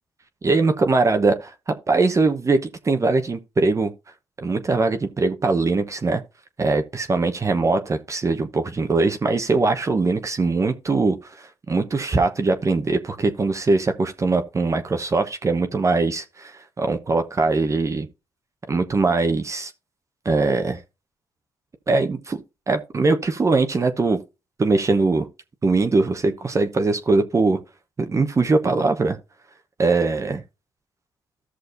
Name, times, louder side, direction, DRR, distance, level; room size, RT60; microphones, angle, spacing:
voice 1, 0.4-2.6 2.8-3.9 4.4-6.2 6.6-18.1 18.7-19.7 20.2-20.8 21.9-22.4 22.7-24.2 24.6-25.3 25.6-27.6 28.0-29.2 29.8-30.4, right 3 dB, 35° right, 1.0 m, -21 dB
14.0 x 6.3 x 2.6 m
supercardioid pair, 60°, 9 cm